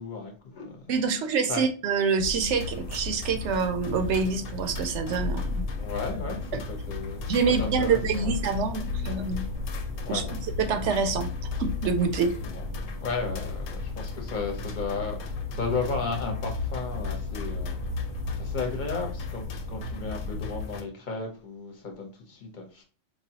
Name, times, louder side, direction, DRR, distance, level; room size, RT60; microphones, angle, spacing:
voice 1, 0.0-0.8 1.5-1.6 5.8-6.4 6.7-8.3 10.0-10.3 12.4-12.6 13.0-17.7 18.4-22.8, left 4 dB, 40° left, 2 dB, 0.9 m, -34 dB
voice 2, 0.9-5.7 6.5-6.6 7.3-9.4 10.1-10.2 10.6-11.3 11.6-12.3, right 5 dB, 70° right, 7 dB, 0.8 m, -26 dB
sound 1, 2.2-20.7, left 3 dB, 85° right, 1.1 m, -34 dB
sound 2, 2.5-20.8, left 3 dB, 80° left, 1.0 m, -42 dB
4.9 x 2.2 x 2.7 m, 0.38 s
omnidirectional pair, 1.4 m